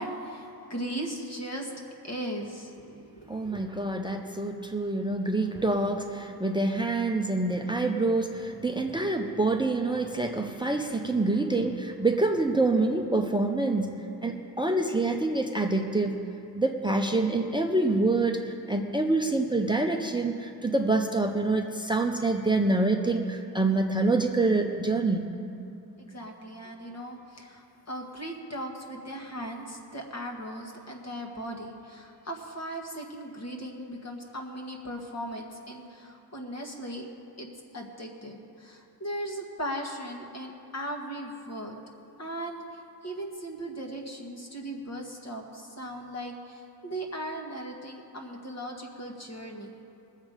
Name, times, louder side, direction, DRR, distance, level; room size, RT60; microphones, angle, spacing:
voice 1, 0.0-1.7 2.0-3.5 26.0-37.1 37.4-37.5 37.7-41.8 42.2-49.8, right 1 dB, 40° left, 1 dB, 1.7 m, -38 dB
voice 2, 3.3-16.1 16.5-25.3, right 2 dB, 10° right, 3 dB, 0.7 m, -26 dB
21.0 x 7.4 x 5.0 m, 2.6 s
wide cardioid pair, 125°, 40 cm